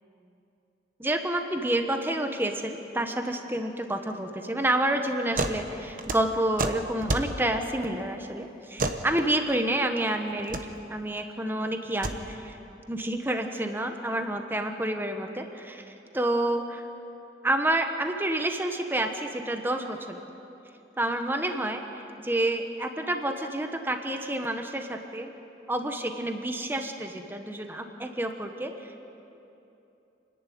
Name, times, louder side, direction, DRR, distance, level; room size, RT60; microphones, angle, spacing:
voice 1, 1.0-10.6 10.9-12.6 12.9-16.8 17.4-20.3 21.0-21.8 22.2-25.3 25.7-28.7, right 1 dB, 10° right, 5 dB, 1.1 m, -29 dB
sound 1, 5.4-5.6 5.9-7.3 8.8-9.0 10.3-10.6 11.9-12.2, right 2 dB, 50° right, 1.1 m, -29 dB
28.5 x 11.0 x 9.3 m, 2.9 s
head